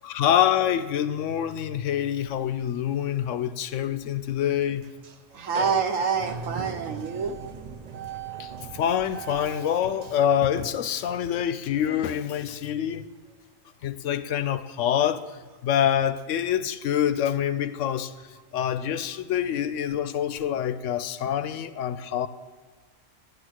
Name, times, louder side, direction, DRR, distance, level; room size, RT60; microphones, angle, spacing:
voice 1, 0.0-4.8 8.4-13.0 13.8-15.2 15.6-18.1 18.5-22.3, left 10 dB, 75° left, 0.9 m, -26 dB
sound 1, 2.3-2.5 2.9-3.0 3.3-3.4 4.8-5.2 5.5-11.6, right 6 dB, 55° right, 0.4 m, -40 dB
voice 2, 5.3-7.4, right 6 dB, 80° right, 1.4 m, -27 dB
10.5 x 10.5 x 6.3 m
omnidirectional pair, 1.3 m